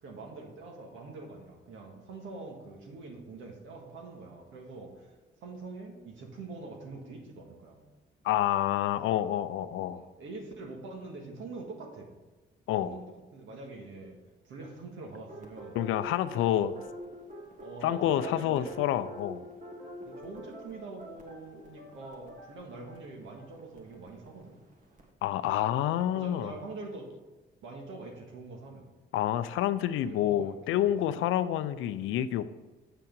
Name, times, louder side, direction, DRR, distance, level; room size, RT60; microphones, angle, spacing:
voice 1, 0.0-5.1 5.4-7.8 9.0-9.3 9.6-12.1 12.8-13.0 13.3-14.2 14.4-15.8 16.5-16.9 17.6-18.8 20.0-24.6 26.1-27.1 27.6-28.9 30.0-31.3, right 3 dB, 75° right, 1 dB, 1.8 m, -44 dB
voice 2, 8.2-10.0 12.7-13.0 15.7-16.7 17.8-19.4 25.2-26.5 29.1-32.5, left 12 dB, 90° left, 13 dB, 0.5 m, -28 dB
sound 1, 15.3-25.1, equal, 40° right, 1.6 m, -46 dB
7.8 x 5.7 x 5.3 m, 1.2 s
cardioid pair, 90°, 20 cm